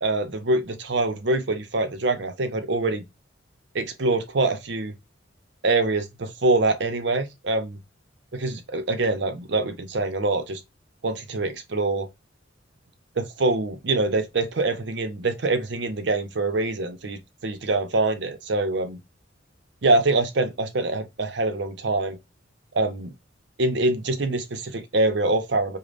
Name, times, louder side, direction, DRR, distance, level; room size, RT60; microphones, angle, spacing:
voice 1, 0.0-3.0 3.7-4.9 5.6-7.8 8.3-10.6 11.0-12.1 13.2-19.0 19.8-22.2 22.7-23.1 23.6-25.8, right 2 dB, 60° right, 0.7 m, -24 dB
5.1 x 2.2 x 2.5 m
head